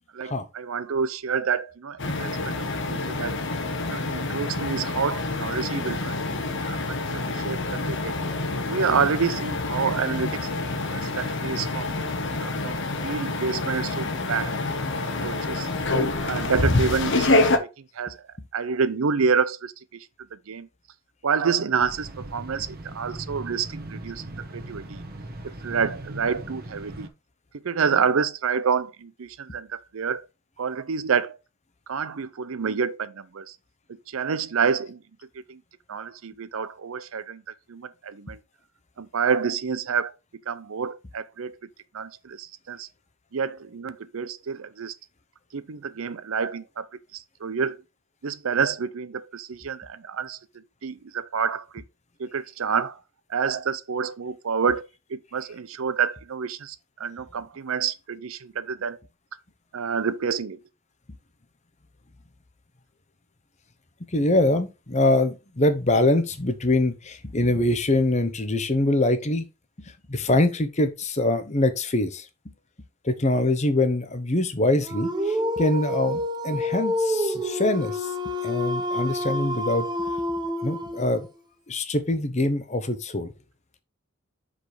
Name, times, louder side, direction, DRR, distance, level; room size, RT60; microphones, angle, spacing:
voice 1, 0.1-2.3 2.9-3.4 3.9-6.2 6.6-8.1 8.7-12.1 12.4-14.8 15.2-15.7 16.2-17.7 17.9-18.2 18.5-20.1 20.3-20.7 21.2-25.0 25.4-27.1 27.6-30.2 30.6-31.4 31.9-33.5 33.9-35.0 35.5-35.6 35.9-37.4 37.7-38.4 39.0-40.1 40.5-41.6 41.9-42.9 43.3-44.9 45.5-46.8 47.1-47.8 48.2-50.4 50.8-51.8 52.2-53.0 53.3-59.0 59.7-60.6, right 6 dB, 75° right, 0.6 m, -28 dB
sound 1, 2.0-17.6, left 2 dB, 55° left, 1.2 m, -27 dB
sound 2, 21.8-27.1, right 1 dB, 45° right, 1.3 m, -39 dB
voice 2, 64.1-69.5 70.1-72.2 73.0-78.1 78.4-79.9 80.6-81.3 81.7-83.3, left 2 dB, 35° left, 1.0 m, -24 dB
Dog, 74.8-81.2, left 1 dB, 20° right, 0.7 m, -28 dB
6.1 x 5.1 x 4.9 m
head